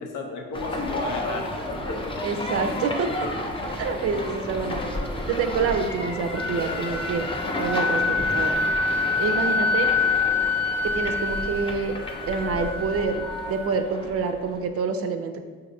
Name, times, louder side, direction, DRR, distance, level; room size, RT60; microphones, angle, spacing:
voice 1, 0.0-2.3 3.2-3.3 6.5-7.0, left 4 dB, 85° left, 3 dB, 0.6 m, -34 dB
sound 1, 0.5-14.7, left 1 dB, 20° left, 0.5 m, -32 dB
voice 2, 2.2-3.1 3.8-4.8 5.3-7.3 7.6-8.5 9.2-9.9 10.9-11.9 12.2-15.4, right 5 dB, 50° right, 7 dB, 0.4 m, -27 dB
Wind instrument woodwind instrument, 6.0-13.7, left 4 dB, 50° left, 0.8 m, -26 dB
5.1 x 2.6 x 2.6 m, 1.5 s
cardioid pair, 90°, 30 cm